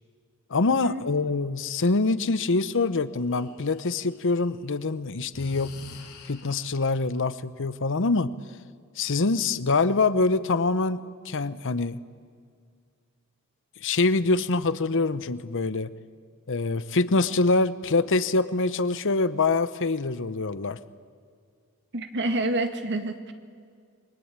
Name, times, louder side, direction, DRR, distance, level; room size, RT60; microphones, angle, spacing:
voice 1, 0.5-5.7 6.3-8.3 9.0-12.0 13.8-15.9 16.5-20.8, left 3 dB, 60° left, 14 dB, 0.9 m, -25 dB
Breathing, 3.3-4.5 5.3-6.9, left 2 dB, 80° left, 5.3 m, -44 dB
voice 2, 21.9-23.3, right 2 dB, 55° right, 7 dB, 2.0 m, -28 dB
28.0 x 22.5 x 8.9 m, 2.1 s
head